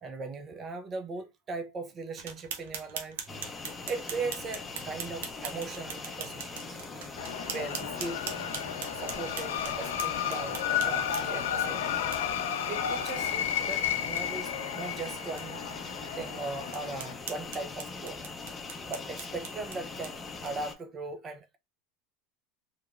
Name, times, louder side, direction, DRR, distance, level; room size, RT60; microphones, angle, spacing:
voice 1, 0.0-3.2 3.9-6.8 7.5-8.2 8.9-12.1 12.7-15.6 16.2-18.2 18.9-21.6, right 3 dB, 35° right, 0.5 m, -39 dB
sound 1, 2.2-11.5 12.1-12.2 12.6-12.7 13.1-13.2 13.5-13.6 14.0-14.2 14.7-14.8 15.4-15.5 16.0-16.1 16.7-20.7, right 7 dB, 80° right, 0.6 m, -42 dB
sound 2, 3.3-20.7, left 4 dB, 25° left, 0.5 m, -41 dB
sound 3, 7.2-17.1, left 9 dB, 85° left, 0.3 m, -33 dB
3.0 x 2.1 x 2.4 m
hypercardioid pair, 95°, 0 cm